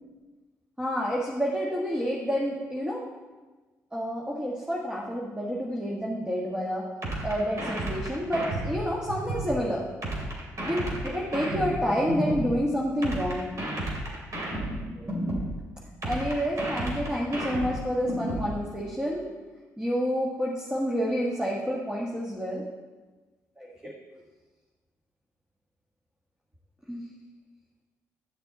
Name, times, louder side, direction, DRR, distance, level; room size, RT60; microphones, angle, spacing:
voice 1, 0.8-3.0 3.9-6.8 7.2-9.9 10.6-13.5 14.9-15.1 16.0-19.3 19.8-22.6 23.6-23.9 26.9-27.0, equal, 10° right, -3 dB, 1.5 m, -29 dB
sound 1, 7.0-9.5 10.0-12.5 13.0-15.5 16.0-18.5, right 1 dB, 50° right, 2.9 m, -32 dB
10.5 x 6.6 x 4.0 m, 1.3 s
supercardioid pair, 55°, 7 cm